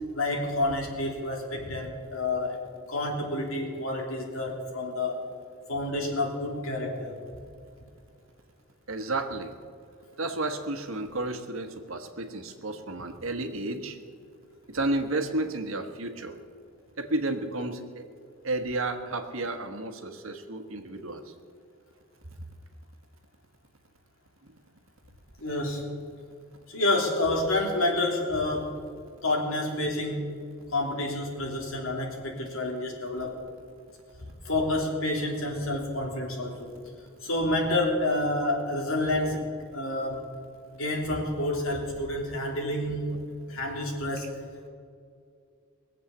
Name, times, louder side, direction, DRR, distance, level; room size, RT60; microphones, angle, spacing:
voice 1, 0.1-2.6 2.9-5.2 5.7-7.2 25.4-25.9 26.7-28.8 29.2-30.2 30.7-33.4 34.4-36.7 37.2-40.3 40.8-43.1 43.5-44.4, left 2 dB, 80° left, 0 dB, 3.1 m, -29 dB
voice 2, 8.9-9.5 10.2-14.0 14.7-16.4 17.0-17.8 18.4-21.2, right 2 dB, 80° right, 7 dB, 1.3 m, -32 dB
21.0 x 7.5 x 7.1 m, 2.4 s
head